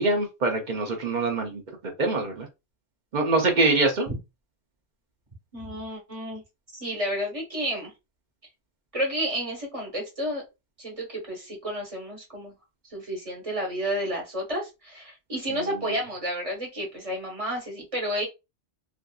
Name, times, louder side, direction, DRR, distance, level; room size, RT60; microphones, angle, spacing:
voice 1, 0.0-2.5 3.1-4.1 15.5-15.6, right 2 dB, 50° right, 2 dB, 0.6 m, -24 dB
voice 2, 5.5-6.4 6.7-7.9 8.9-10.4 10.8-12.5 12.8-18.3, equal, 30° right, -1 dB, 1.1 m, -31 dB
2.5 x 2.5 x 2.2 m, 0.25 s
omnidirectional pair, 1.2 m